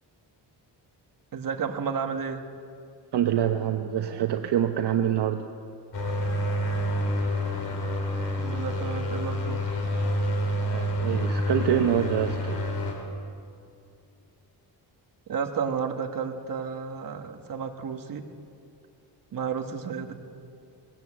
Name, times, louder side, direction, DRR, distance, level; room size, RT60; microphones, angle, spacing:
voice 1, 1.3-2.4 8.3-9.7 15.3-18.2 19.3-20.1, right 6 dB, 50° right, 5 dB, 1.6 m, -32 dB
voice 2, 3.1-5.5 10.7-12.6, right 10 dB, 70° right, 5 dB, 1.0 m, -25 dB
sound 1, 5.9-12.9, left 1 dB, 80° left, 4.2 m, -28 dB
19.5 x 18.0 x 7.5 m, 2.4 s
wide cardioid pair, 140°, 42 cm